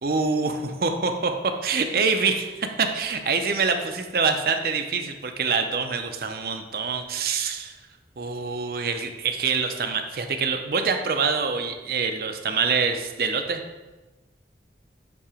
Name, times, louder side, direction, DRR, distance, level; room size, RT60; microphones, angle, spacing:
voice 1, 0.0-7.7 8.2-13.6, right 5 dB, 55° right, 6 dB, 0.5 m, -25 dB
8.4 x 2.9 x 4.9 m, 1.1 s
head